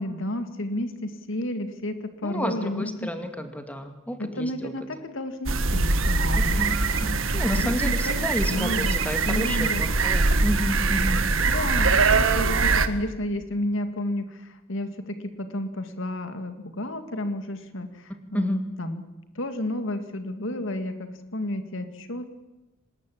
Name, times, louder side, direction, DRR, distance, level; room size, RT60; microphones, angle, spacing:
voice 1, 0.0-3.1 4.2-6.8 7.5-9.0 9.3-9.8 11.5-19.0 19.4-22.3, left 1 dB, 65° left, 8 dB, 2.2 m, -31 dB
voice 2, 2.2-4.7 6.6-11.2 18.3-18.6, equal, 5° left, 7 dB, 2.3 m, -31 dB
sound 1, 5.5-12.9, right 3 dB, 70° right, 1.6 m, -23 dB
25.0 x 20.0 x 8.6 m, 1.1 s
head